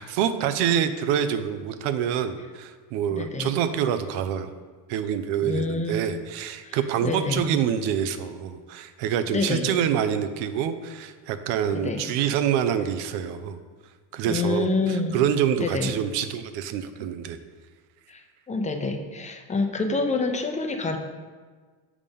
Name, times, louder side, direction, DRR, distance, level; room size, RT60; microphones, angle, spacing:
voice 1, 0.0-4.5 4.9-13.6 14.1-17.4, right 9 dB, 70° right, 10 dB, 0.7 m, -26 dB
voice 2, 3.1-3.5 5.4-6.0 6.6-7.5 9.3-9.7 11.7-12.0 14.3-15.2 15.6-15.9 18.1-18.2 18.5-21.0, left 3 dB, 15° left, 5 dB, 0.6 m, -27 dB
6.7 x 3.6 x 5.4 m, 1.5 s
supercardioid pair, 110°, 43 cm